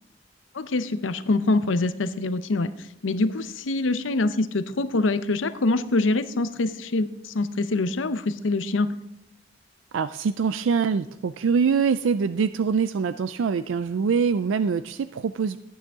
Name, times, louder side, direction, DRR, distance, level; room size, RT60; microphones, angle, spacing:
voice 1, 0.5-2.7 3.0-8.9, left 2 dB, 85° left, 12 dB, 0.7 m, -25 dB
voice 2, 9.9-15.6, right 6 dB, 80° right, 12 dB, 0.4 m, -24 dB
14.5 x 9.3 x 3.6 m, 0.87 s
head